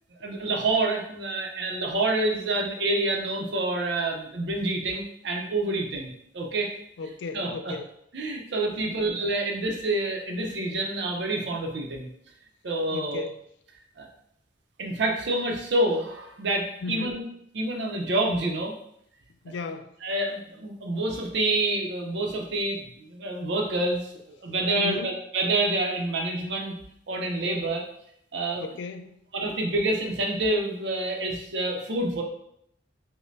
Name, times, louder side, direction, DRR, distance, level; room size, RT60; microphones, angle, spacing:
voice 1, 0.2-6.7 7.3-7.8 8.1-12.1 12.6-13.2 14.0-14.1 14.8-17.2 17.5-18.7 20.0-26.7 27.1-27.8 28.3-28.6 29.3-32.2, right 2 dB, 65° right, 1 dB, 0.6 m, -27 dB
voice 2, 7.0-7.9 8.9-9.0 12.9-13.4 16.8-17.2 19.4-20.0 24.7-25.1 28.6-29.2, left 4 dB, 70° left, 9 dB, 0.3 m, -35 dB
5.1 x 2.1 x 2.6 m, 0.73 s
head